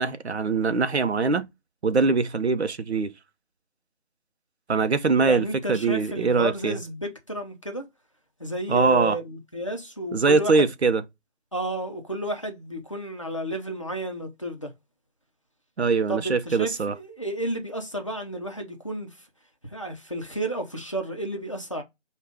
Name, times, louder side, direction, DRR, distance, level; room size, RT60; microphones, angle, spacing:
voice 1, 0.0-1.5 1.8-3.1 4.7-6.8 8.7-9.2 10.1-11.0 15.8-16.9, right 4 dB, 65° right, 0.7 m, -22 dB
voice 2, 5.1-7.9 8.4-10.6 11.5-14.7 16.1-19.3 19.7-21.8, right 1 dB, 25° left, 0.6 m, -32 dB
4.9 x 2.4 x 3.4 m
figure-of-eight pair, 160°, 36 cm